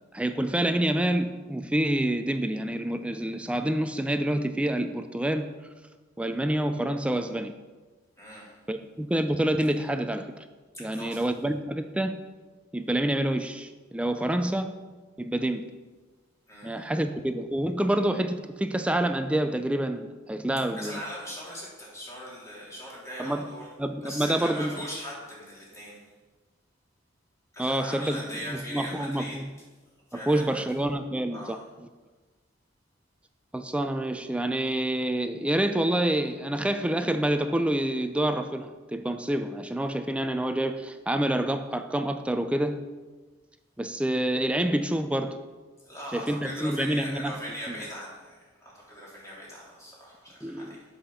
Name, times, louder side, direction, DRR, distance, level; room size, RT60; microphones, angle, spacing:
voice 1, 0.1-5.5 6.2-7.5 8.7-10.3 10.8-12.2 12.7-14.7 15.2-15.6 16.6-21.0 23.2-23.5 23.8-24.7 27.6-28.2 28.5-29.4 30.1-31.6 33.5-42.8 43.8-45.4 46.1-47.4 50.4-50.7, right 1 dB, 5° right, 8 dB, 0.4 m, -27 dB
voice 2, 8.2-8.6 10.7-11.2 16.5-16.8 20.8-23.7 24.0-26.0 27.5-29.4 30.1-30.6 31.3-31.6 45.8-50.8, equal, 15° left, -6 dB, 3.1 m, -40 dB
8.1 x 5.7 x 6.4 m, 1.3 s
head